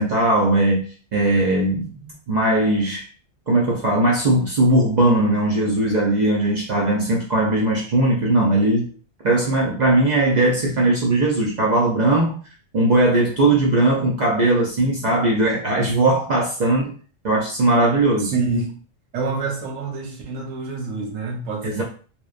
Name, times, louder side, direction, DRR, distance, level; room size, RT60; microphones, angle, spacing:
voice 1, 0.0-3.0 3.5-8.9 9.2-12.4 12.7-16.9 17.2-18.3 21.6-21.8, right 2 dB, 65° right, -3 dB, 0.4 m, -19 dB
voice 2, 18.3-18.7 19.1-21.8, right 4 dB, 80° right, 0 dB, 1.1 m, -26 dB
2.9 x 2.1 x 2.3 m, 0.39 s
omnidirectional pair, 1.3 m